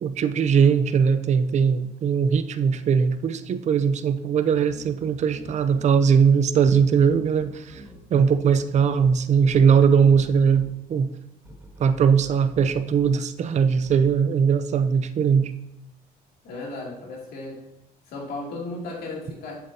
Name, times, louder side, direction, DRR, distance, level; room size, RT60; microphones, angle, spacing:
voice 1, 0.0-7.8 8.1-11.1 11.8-15.5, right 6 dB, 45° right, 12 dB, 0.5 m, -20 dB
sound 1, 4.6-5.9 6.6-10.7 11.4-13.1 13.8-14.1, right 2 dB, 10° right, 1.8 m, -45 dB
voice 2, 16.4-17.6 18.1-19.5, left 2 dB, 65° left, -3 dB, 2.6 m, -35 dB
7.7 x 7.3 x 2.8 m, 0.84 s
cardioid pair, 110°, 17 cm